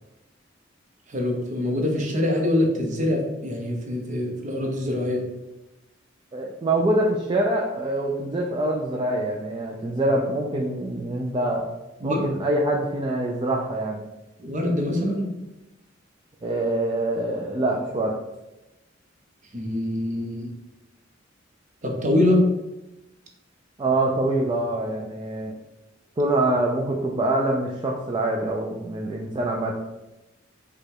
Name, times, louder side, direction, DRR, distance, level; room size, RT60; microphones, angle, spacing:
voice 1, 1.1-5.3 12.0-12.2 14.4-15.3 19.5-20.5 21.8-22.4, left 1 dB, 40° right, 1 dB, 0.8 m, -24 dB
voice 2, 6.3-11.6 12.0-14.0 16.4-18.2 23.8-25.6 26.2-29.7, right 1 dB, 25° right, -1 dB, 0.4 m, -25 dB
4.9 x 2.3 x 4.4 m, 0.99 s
head